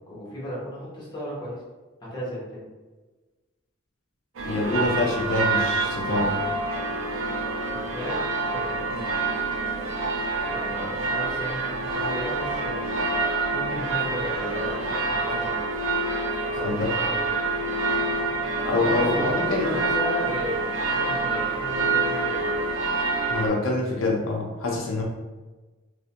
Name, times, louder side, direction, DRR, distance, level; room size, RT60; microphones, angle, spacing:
voice 1, 0.1-1.6 2.0-2.6 7.6-8.2 8.5-9.2 10.5-13.0 13.5-15.6 16.5-17.2 18.6-22.6, equal, 20° left, -7 dB, 0.8 m, -34 dB
sound 1, 4.4-23.5, right 3 dB, 75° right, 0.4 m, -27 dB
voice 2, 4.5-6.4 16.6-16.9 18.7-19.7 23.3-25.0, left 2 dB, 85° left, 0 dB, 0.5 m, -25 dB
2.4 x 2.1 x 2.7 m, 1.2 s
head